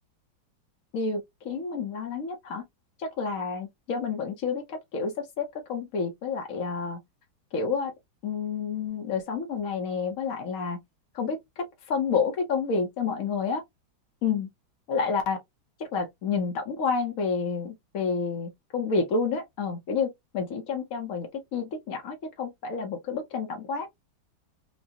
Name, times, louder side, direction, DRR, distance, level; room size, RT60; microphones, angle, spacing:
voice 1, 0.9-2.6 3.0-7.0 7.5-7.9 8.2-10.8 11.1-13.6 14.2-14.5 14.9-15.4 15.8-23.9, left 5 dB, 60° left, 0.9 m, -29 dB
4.7 x 2.0 x 2.7 m
omnidirectional pair, 2.2 m